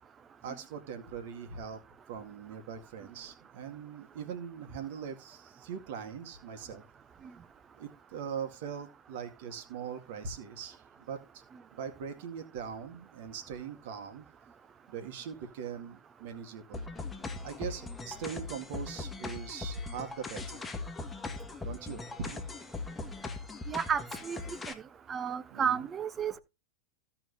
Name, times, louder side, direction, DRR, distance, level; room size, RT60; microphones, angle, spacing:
voice 1, 0.4-1.8 2.1-6.8 7.8-11.4 11.7-14.3 14.9-16.8 17.4-20.7 21.6-22.4 25.5-25.7, right 7 dB, 50° right, 2.1 m, -41 dB
sound 1, 16.7-24.7, left 3 dB, 10° left, 1.6 m, -40 dB
voice 2, 23.7-24.4 25.1-26.4, right 7 dB, 20° right, 0.8 m, -32 dB
16.0 x 6.0 x 2.8 m
figure-of-eight pair, 90°, 0 cm